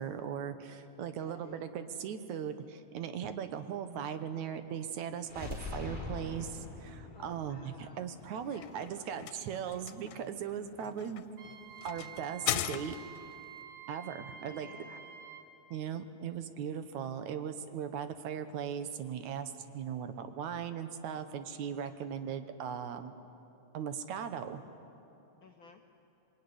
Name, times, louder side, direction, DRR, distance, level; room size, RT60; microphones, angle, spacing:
voice 1, 0.0-11.3 11.8-13.0 13.9-14.7 15.7-23.1 23.7-24.6, right 8 dB, 80° right, 9 dB, 2.5 m, -38 dB
voice 2, 1.0-1.6 7.1-9.8 14.4-15.1 25.4-25.9, left 6 dB, 70° left, 4 dB, 1.2 m, -56 dB
sound 1, 5.2-9.1, left 2 dB, 15° left, 4.1 m, -43 dB
sound 2, 8.2-13.3, left 12 dB, 85° left, 2.3 m, -39 dB
Wind instrument woodwind instrument, 11.4-15.5, right 8 dB, 50° right, 2.3 m, -49 dB
26.5 x 23.0 x 9.7 m, 2.9 s
omnidirectional pair, 3.4 m